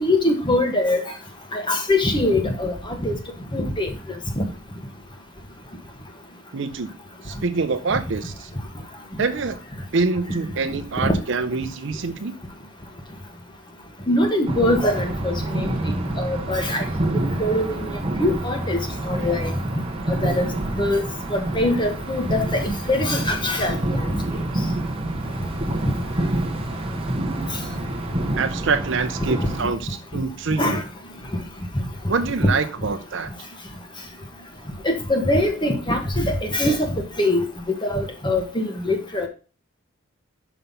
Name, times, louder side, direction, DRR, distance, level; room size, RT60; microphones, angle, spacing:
voice 1, 0.0-1.0 1.5-3.1 3.5-3.9 4.4-4.5 11.0-11.2 14.1-15.7 16.2-16.8 17.1-18.8 19.1-19.5 20.1-20.5 20.7-21.0 21.3-24.0 29.3-29.5 30.6-30.8 32.4-32.5 34.8-37.4 37.8-39.3, left 1 dB, 20° left, 4 dB, 1.2 m, -22 dB
voice 2, 6.5-6.9 7.2-8.5 9.2-9.6 9.9-12.4 28.4-30.8 32.1-33.3, right 4 dB, 60° right, 8 dB, 0.6 m, -25 dB
sound 1, 14.5-29.6, right 1 dB, 25° right, 1.0 m, -27 dB
5.7 x 5.5 x 5.5 m, 0.34 s
head